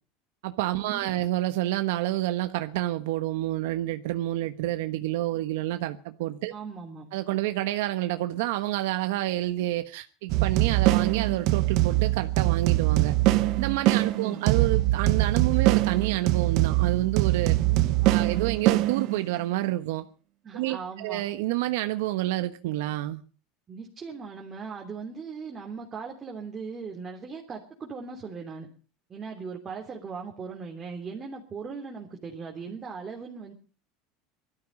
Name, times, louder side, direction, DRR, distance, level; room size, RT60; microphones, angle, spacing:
voice 1, 0.4-6.5 7.1-13.1 13.6-17.5 18.1-20.0 20.5-23.2, right 15 dB, 85° right, 1.2 m, -28 dB
voice 2, 6.5-7.1 14.1-14.4 17.5-18.4 20.4-21.2 23.7-28.7 29.1-33.5, right 5 dB, 25° right, 3.2 m, -39 dB
sound 1, 10.3-19.4, right 17 dB, 60° right, 1.4 m, -23 dB
19.5 x 13.0 x 5.3 m
supercardioid pair, 135°, 0 cm